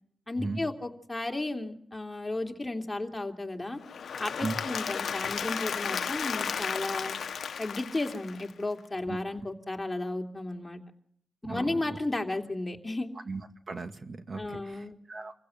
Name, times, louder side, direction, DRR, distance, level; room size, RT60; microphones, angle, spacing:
voice 1, 0.3-3.8 4.2-7.2 7.6-10.8 11.4-13.1 14.3-15.0, left 2 dB, 20° left, 3 dB, 3.0 m, -34 dB
Applause / Crowd, 3.8-8.8, left 7 dB, 75° left, 0.9 m, -34 dB
voice 2, 11.4-12.0 13.3-13.4 13.7-15.3, right 3 dB, 45° right, 6 dB, 2.1 m, -37 dB
27.5 x 16.0 x 7.7 m, 0.65 s
cardioid pair, 80°, 0 cm